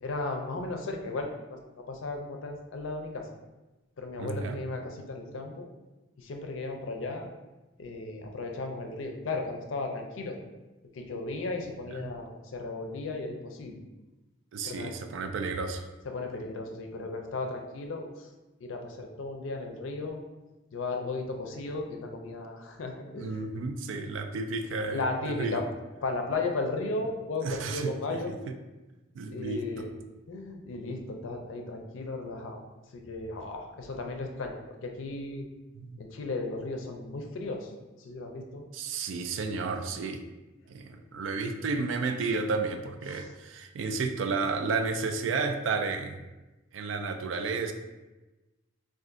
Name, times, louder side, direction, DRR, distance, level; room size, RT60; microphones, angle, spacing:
voice 1, 0.0-3.3 4.0-5.7 6.2-7.3 7.8-10.4 10.9-13.8 14.6-14.9 16.0-18.3 18.6-20.2 20.7-23.3 24.9-25.6 26.0-28.3 29.3-29.9 30.3-32.6 32.9-34.6 34.8-35.4 36.0-37.7 38.0-38.6 43.1-43.3, left 3 dB, 85° left, 3 dB, 0.5 m, -35 dB
voice 2, 4.2-4.6 12.0-12.1 14.5-15.9 23.2-25.6 27.4-28.2 29.2-29.9 35.8-36.0 38.7-40.2 40.7-46.2 46.7-47.7, right 4 dB, 75° right, 6 dB, 0.3 m, -32 dB
2.5 x 2.4 x 3.8 m, 1.1 s
head